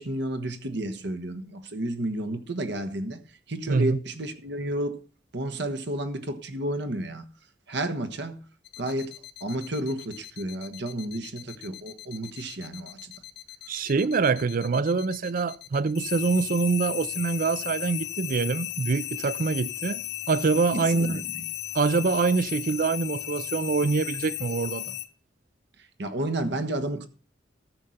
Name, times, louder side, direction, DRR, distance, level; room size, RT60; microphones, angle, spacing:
voice 1, 0.0-3.2 3.5-5.0 5.3-7.3 7.7-8.4 8.8-9.1 9.4-13.1 20.7-21.4 26.0-27.1, right 1 dB, 65° right, 1.3 m, -31 dB
voice 2, 3.7-4.0 13.7-21.2 21.7-25.0, right 4 dB, 50° right, 0.5 m, -25 dB
sound 1, 8.6-25.1, left 15 dB, 65° left, 0.9 m, -36 dB
13.5 x 6.5 x 5.8 m
head